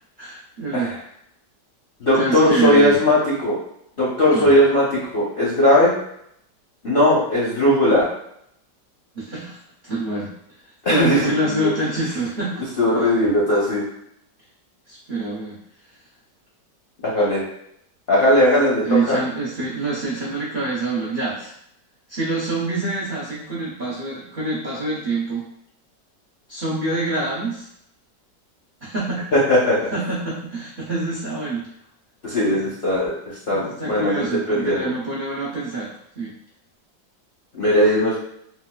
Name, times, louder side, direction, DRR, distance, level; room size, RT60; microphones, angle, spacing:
voice 1, 0.2-0.9 2.2-3.0 4.3-4.5 9.1-9.6 9.8-10.3 10.9-12.6 14.9-15.6 18.8-21.5 22.1-25.4 26.5-27.7 28.8-29.3 29.9-31.7 32.5-32.7 33.5-36.3, right 2 dB, 75° right, -7 dB, 0.4 m, -26 dB
voice 2, 2.0-3.6 4.0-6.0 6.8-8.1 10.8-11.7 12.8-13.8 17.0-17.4 18.1-19.2 29.3-29.8 32.2-34.9 37.6-38.2, left 1 dB, 50° left, -8 dB, 0.7 m, -18 dB
4.0 x 2.3 x 2.2 m, 0.72 s
omnidirectional pair, 1.9 m